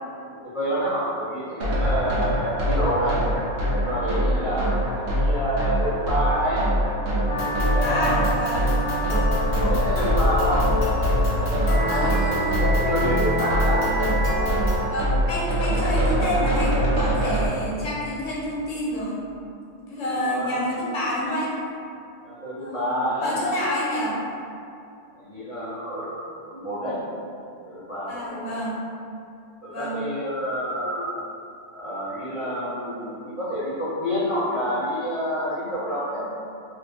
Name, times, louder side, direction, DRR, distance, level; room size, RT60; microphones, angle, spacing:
voice 1, 0.3-3.2 3.7-6.7 7.3-8.3 9.5-10.7 11.3-13.9 20.2-20.5 22.2-23.3 25.1-27.0 27.6-28.5 29.6-31.2 31.7-36.4, equal, 35° left, -11 dB, 0.6 m, -28 dB
sound 1, 1.6-17.5, right 1 dB, 60° right, 0.8 m, -24 dB
sound 2, 7.3-14.8, left 1 dB, 65° left, 0.9 m, -26 dB
voice 2, 7.8-8.7 11.9-12.6 14.8-19.2 19.9-21.5 22.6-22.9 23.2-24.2 28.1-28.8 29.7-30.0, left 1 dB, 80° left, -7 dB, 1.1 m, -28 dB
2.5 x 2.4 x 3.3 m, 2.6 s
omnidirectional pair, 1.3 m